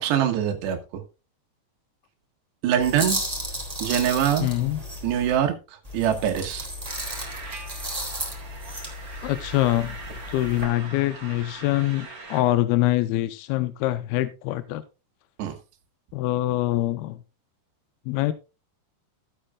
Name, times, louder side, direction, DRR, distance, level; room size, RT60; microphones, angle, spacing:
voice 1, 0.0-1.0 2.6-3.2 3.8-4.5 5.0-5.6 5.9-6.7 15.4-15.6, right 10 dB, 85° right, 5 dB, 3.6 m, -23 dB
sound 1, 2.8-5.4 5.8-10.7, equal, 10° right, 3.0 m, -34 dB
voice 2, 4.4-4.8 9.2-10.0 10.3-14.8 16.1-17.2 18.1-18.3, left 15 dB, 80° left, 12 dB, 2.4 m, -24 dB
sound 2, 6.8-12.4, right 3 dB, 25° right, 2.3 m, -41 dB
15.5 x 8.7 x 2.3 m, 0.29 s
omnidirectional pair, 4.8 m